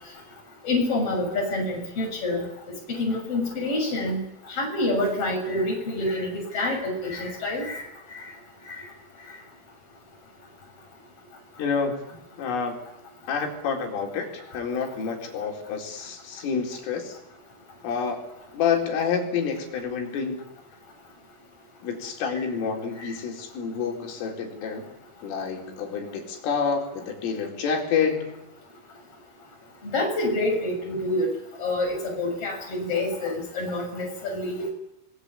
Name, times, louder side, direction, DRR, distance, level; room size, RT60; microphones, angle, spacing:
voice 1, 0.6-2.5 3.0-4.2 4.5-7.8 8.1-8.3 8.7-8.8 22.3-22.4 23.0-23.1 29.8-31.3 31.6-34.7, left 2 dB, 30° left, 0 dB, 7.5 m, -27 dB
voice 2, 11.6-12.0 12.4-12.8 13.3-17.2 17.8-18.2 18.5-20.4 21.8-24.9 25.2-28.3, left 6 dB, 85° left, 2 dB, 6.7 m, -28 dB
28.0 x 21.0 x 8.5 m, 0.89 s
omnidirectional pair, 5.6 m